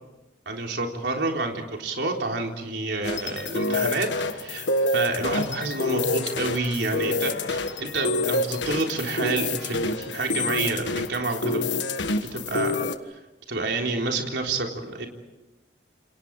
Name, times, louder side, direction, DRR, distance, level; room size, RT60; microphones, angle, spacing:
voice 1, 0.5-11.6 12.3-12.7 13.1-13.2 13.5-15.1, right 3 dB, 75° right, 1 dB, 3.7 m, -29 dB
sound 1, 3.0-13.0, left 2 dB, 80° left, 1.5 m, -27 dB
28.5 x 28.0 x 4.9 m, 1.0 s
head